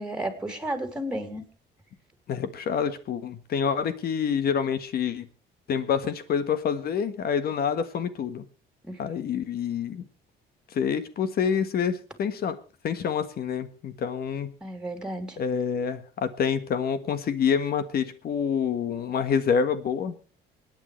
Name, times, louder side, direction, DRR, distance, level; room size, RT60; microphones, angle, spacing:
voice 1, 0.0-1.4 8.8-9.0 14.6-15.4, right 1 dB, 5° right, 5 dB, 3.2 m, -32 dB
voice 2, 2.3-5.2 5.7-8.4 9.0-10.0 10.7-12.6 12.8-14.5 15.4-20.2, left 7 dB, 55° left, 11 dB, 1.5 m, -27 dB
27.0 x 9.2 x 3.3 m, 0.37 s
cardioid pair, 105°, 18 cm